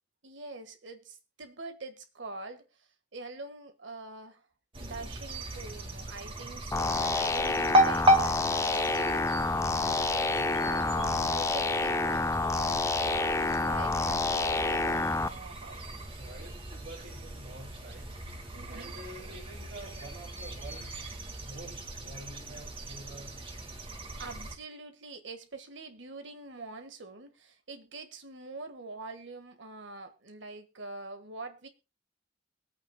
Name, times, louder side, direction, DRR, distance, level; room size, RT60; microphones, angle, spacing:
voice 1, 0.2-4.5 4.8-15.8 18.5-18.9 24.2-31.7, right 3 dB, 80° right, 1.5 m, -44 dB
sound 1, 4.7-24.5, equal, 30° right, 1.6 m, -34 dB
sound 2, 6.7-15.3, left 3 dB, 15° left, 0.5 m, -28 dB
voice 2, 10.4-10.8 16.2-21.1 21.4-23.4, right 1 dB, 60° right, 2.5 m, -48 dB
22.5 x 8.7 x 2.2 m
head